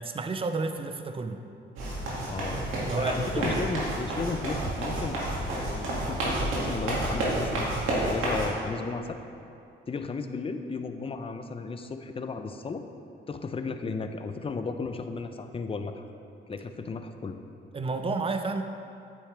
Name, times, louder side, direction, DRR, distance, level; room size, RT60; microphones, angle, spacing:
voice 1, 0.0-1.4 2.9-3.5 17.7-18.6, right 3 dB, 25° right, 7 dB, 0.6 m, -31 dB
sound 1, 1.8-8.5, right 1 dB, 90° right, 2.2 m, -30 dB
voice 2, 2.3-5.2 5.5-9.2 9.9-12.8 13.3-16.1 16.5-17.3, left 4 dB, 30° left, 7 dB, 0.6 m, -34 dB
8.9 x 8.2 x 3.4 m, 2.6 s
cardioid pair, 90°, 20 cm